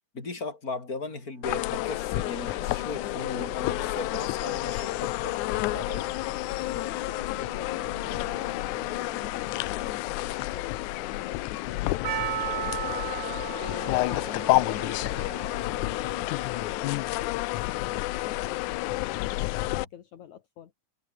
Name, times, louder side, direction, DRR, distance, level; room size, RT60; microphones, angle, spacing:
voice 1, 0.1-6.1 19.6-19.8, left 3 dB, 25° left, 5.1 m, -37 dB
sound 1, 0.9-16.4, right 2 dB, 15° right, 4.0 m, -50 dB
sound 2, 1.4-19.8, left 19 dB, 75° left, 1.9 m, -30 dB
voice 2, 6.7-12.0 12.5-13.0 13.6-20.7, left 10 dB, 60° left, 3.0 m, -43 dB
Percussion, 12.0-17.0, right 11 dB, 80° right, 1.2 m, -36 dB
omnidirectional pair, 3.9 m